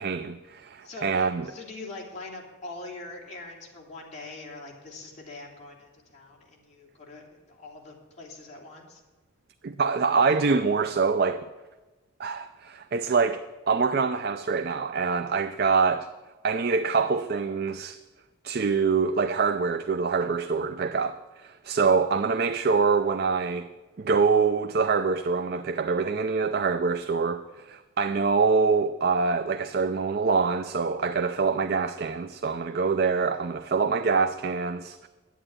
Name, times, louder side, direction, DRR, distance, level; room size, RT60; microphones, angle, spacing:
voice 1, 0.0-1.5 9.6-11.5 12.2-16.1 16.4-18.0 18.4-23.7 24.0-35.1, right 5 dB, 50° right, 0.4 m, -25 dB
voice 2, 0.8-9.0, left 2 dB, 35° left, 2.9 m, -43 dB
11.0 x 8.8 x 10.0 m
head